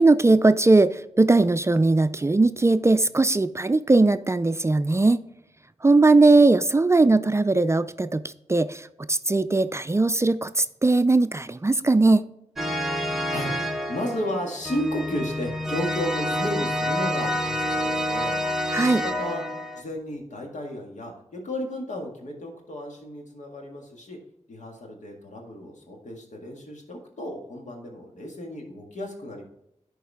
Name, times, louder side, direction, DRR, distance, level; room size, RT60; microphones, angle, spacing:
voice 1, 0.0-5.2 5.8-12.3 18.7-19.0, right 3 dB, 20° right, 13 dB, 0.4 m, -19 dB
sound 1, 12.6-19.8, equal, 5° right, 1.0 m, -28 dB
voice 2, 13.3-19.4 19.8-24.2 24.5-29.4, left 1 dB, 75° left, 1 dB, 1.9 m, -33 dB
11.0 x 4.7 x 3.6 m, 0.81 s
cardioid pair, 55°, 12 cm